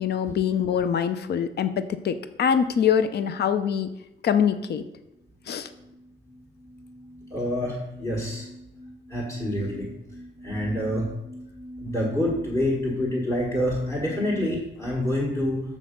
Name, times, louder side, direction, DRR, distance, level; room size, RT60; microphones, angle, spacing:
voice 1, 0.0-3.9 4.2-4.8 5.5-5.7, left 8 dB, 55° left, 11 dB, 0.6 m, -24 dB
sound 1, 5.1-14.6, equal, 10° right, 0.7 m, -42 dB
voice 2, 7.3-8.5 9.1-9.9 10.4-11.1 11.8-15.6, left 1 dB, 15° left, -5 dB, 1.6 m, -27 dB
7.3 x 6.1 x 5.2 m, 0.88 s
wide cardioid pair, 170°, 20 cm